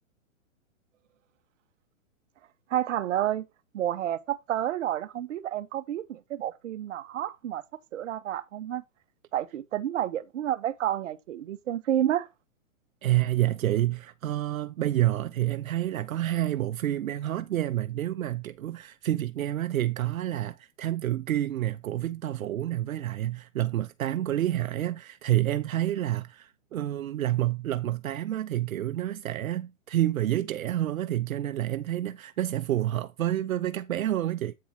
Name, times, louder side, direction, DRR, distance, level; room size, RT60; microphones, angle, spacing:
voice 1, 2.7-3.5 3.7-7.6 7.9-8.8 9.3-12.3, right 11 dB, 65° right, 1.0 m, -30 dB
voice 2, 13.0-34.5, right 13 dB, 85° right, 0.7 m, -28 dB
8.6 x 4.4 x 4.4 m
hypercardioid pair, 150°, 40 cm